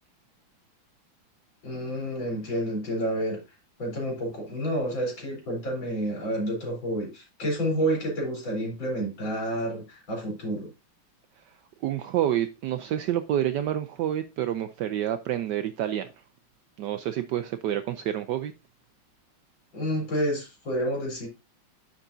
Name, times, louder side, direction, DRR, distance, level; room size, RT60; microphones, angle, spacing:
voice 1, 1.6-3.4 3.8-10.7 19.7-21.3, equal, 65° left, 4.4 m, -29 dB
voice 2, 11.8-16.1 16.8-18.5, right 11 dB, 75° right, 1.0 m, -28 dB
9.9 x 6.0 x 2.6 m
omnidirectional pair, 2.2 m